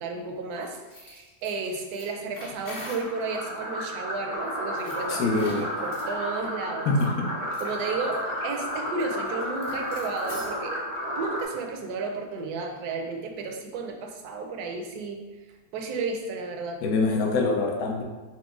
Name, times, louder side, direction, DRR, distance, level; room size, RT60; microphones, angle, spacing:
voice 1, 0.0-5.5 5.8-7.0 7.6-10.8 11.2-15.2 15.7-16.8, right 4 dB, 75° right, 3 dB, 1.1 m, -33 dB
sound 1, 0.7-3.3 4.7-6.1 6.9-7.1 7.5-7.8 8.1-8.2 8.5-10.6, left 2 dB, 50° left, 1.5 m, -43 dB
sound 2, 2.8-11.4, equal, 20° right, 0.4 m, -32 dB
voice 2, 5.1-5.6 6.9-7.3 16.8-18.0, left 3 dB, 65° left, 1 dB, 1.0 m, -24 dB
6.0 x 2.1 x 3.6 m, 1.3 s
omnidirectional pair, 1.8 m